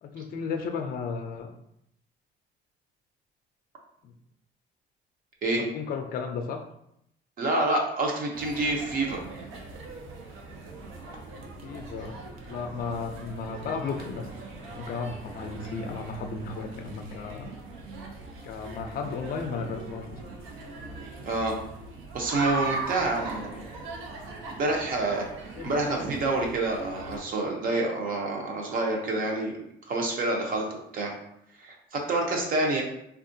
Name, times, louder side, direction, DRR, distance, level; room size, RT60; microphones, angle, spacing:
voice 1, 0.0-1.5 4.0-4.1 5.5-6.6 11.6-12.2 12.5-14.3 14.5-17.5 18.4-20.4 25.6-25.9, left 5 dB, 45° left, 5 dB, 0.4 m, -34 dB
voice 2, 7.4-9.2 21.2-21.5 22.1-23.7 24.6-25.2 25.6-29.5 29.9-30.6 30.9-31.1 31.6-32.8, right 2 dB, 45° right, 0 dB, 0.7 m, -27 dB
sound 1, 8.3-27.2, right 3 dB, 90° right, 0.6 m, -40 dB
3.5 x 2.3 x 2.6 m, 0.76 s
cardioid pair, 165°, 20 cm